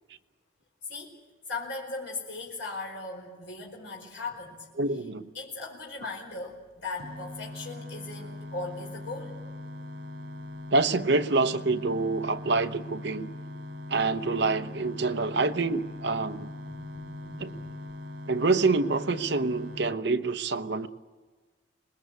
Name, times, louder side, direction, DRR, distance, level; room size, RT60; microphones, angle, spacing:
voice 1, 1.5-4.7 5.3-9.4 14.0-14.2 16.3-17.7, left 3 dB, 65° left, -1 dB, 5.0 m, -39 dB
voice 2, 4.8-5.3 10.7-13.3 13.9-16.5 17.4-17.5 18.3-20.9, right 3 dB, 60° right, 9 dB, 0.9 m, -26 dB
sound 1, 7.0-19.9, left 1 dB, 75° right, 2.5 m, -41 dB
26.5 x 20.0 x 8.2 m, 1.4 s
head